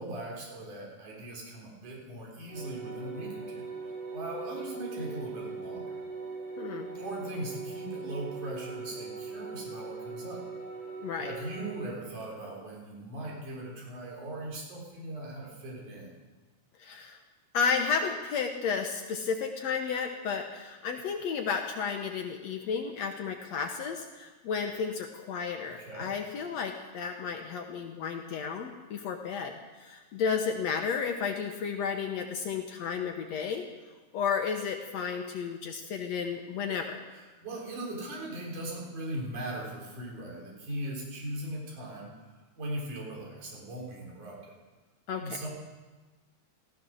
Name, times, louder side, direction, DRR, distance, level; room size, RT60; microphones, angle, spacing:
voice 1, 0.0-3.7 4.1-5.9 7.0-10.4 11.2-16.1 25.7-26.1 37.1-42.1 42.6-44.5 45.2-45.5, right 1 dB, 70° right, -3 dB, 5.3 m, -39 dB
sound 1, 2.5-11.8, right 4 dB, 50° right, 6.7 m, -40 dB
voice 2, 6.6-6.9 11.0-11.4 16.8-17.2 17.5-33.6 34.1-37.0 45.1-45.4, left 6 dB, 65° left, 4 dB, 2.0 m, -32 dB
15.0 x 15.0 x 6.4 m, 1.3 s
omnidirectional pair, 3.6 m